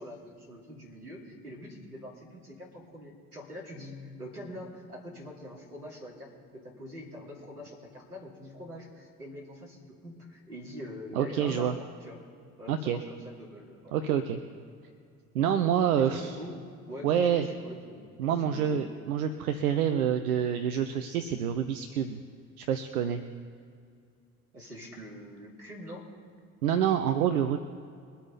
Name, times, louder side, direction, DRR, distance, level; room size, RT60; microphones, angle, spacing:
voice 1, 0.0-12.2 12.6-14.0 15.9-16.5 16.9-18.8 24.5-26.1, equal, 90° right, -2 dB, 2.8 m, -44 dB
voice 2, 11.1-11.7 12.7-13.0 13.9-14.4 15.3-16.4 17.0-17.5 18.2-22.2 22.6-23.2 26.6-27.6, right 9 dB, 70° right, 8 dB, 0.8 m, -27 dB
23.0 x 8.3 x 4.1 m, 2.3 s
figure-of-eight pair, 60°, 45 cm